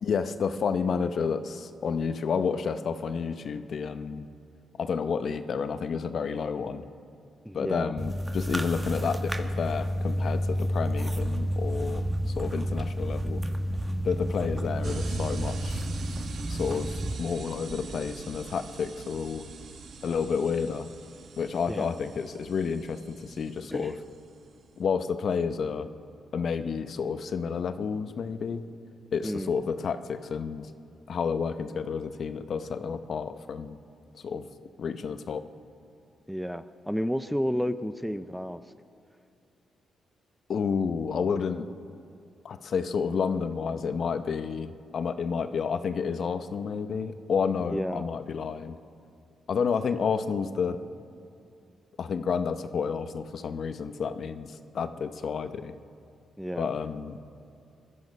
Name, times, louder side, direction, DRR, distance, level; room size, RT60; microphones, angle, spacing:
voice 1, 0.0-4.3 4.8-6.8 7.5-13.4 14.0-15.8 16.5-19.5 20.0-20.9 21.4-24.0 24.8-25.9 26.3-28.6 29.1-30.7 31.1-33.8 34.1-34.5 34.8-35.5 40.5-41.7 42.4-48.8 49.5-50.8 52.0-55.7 56.6-57.2, left 6 dB, 60° left, 10 dB, 0.8 m, -30 dB
voice 2, 7.4-7.9 21.7-22.0 23.7-23.9 29.2-29.5 36.3-38.6 47.6-48.1 56.4-56.7, equal, ahead, 12 dB, 0.5 m, -31 dB
sound 1, 8.0-17.1, equal, 20° right, 1.1 m, -30 dB
sound 2, 14.8-24.8, right 5 dB, 60° right, 1.2 m, -43 dB
20.5 x 13.0 x 5.4 m, 2.6 s
cardioid pair, 95°, 0 cm